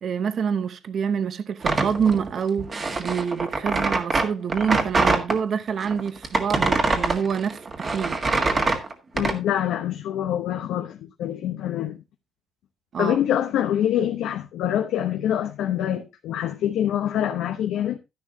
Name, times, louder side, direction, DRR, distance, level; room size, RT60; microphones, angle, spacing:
voice 1, 0.0-8.2 12.9-13.2, right 7 dB, 50° right, 0.8 m, -26 dB
sound 1, 1.6-5.4 5.8-9.4, right 3 dB, 30° right, 1.7 m, -24 dB
voice 2, 9.1-12.0 13.0-18.0, left 10 dB, 85° left, 1.0 m, -25 dB
11.5 x 10.5 x 2.8 m
cardioid pair, 125°, 0 cm